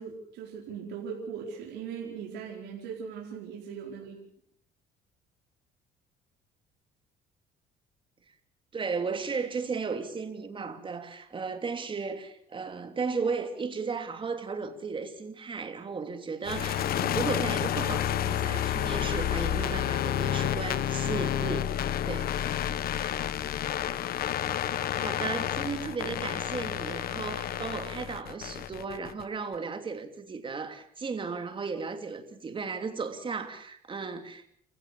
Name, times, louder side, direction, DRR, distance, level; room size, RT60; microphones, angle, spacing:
voice 1, 0.0-4.2 22.1-22.2 22.6-22.7, right 6 dB, 85° right, 4.9 m, -39 dB
voice 2, 8.7-21.7 22.0-22.3 24.8-34.5, right 5 dB, 30° right, 3.1 m, -35 dB
sound 1, 16.4-29.2, left 11 dB, 60° left, 1.2 m, -30 dB
29.5 x 15.5 x 6.8 m
cardioid pair, 110°, 17 cm